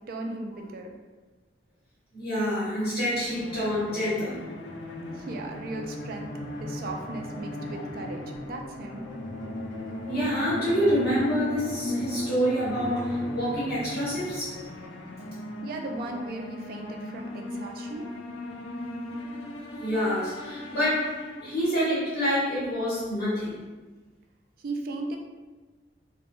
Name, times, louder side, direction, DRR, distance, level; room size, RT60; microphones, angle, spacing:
voice 1, 0.1-0.9 5.1-6.3 6.6-9.0 15.6-18.1 24.6-25.2, right 2 dB, 55° right, 3 dB, 0.3 m, -36 dB
voice 2, 2.1-4.4 10.1-14.7 19.8-23.7, equal, 60° left, -11 dB, 1.0 m, -27 dB
sound 1, 3.1-21.9, left 1 dB, 85° left, 0.4 m, -37 dB
2.1 x 2.1 x 2.9 m, 1.2 s
head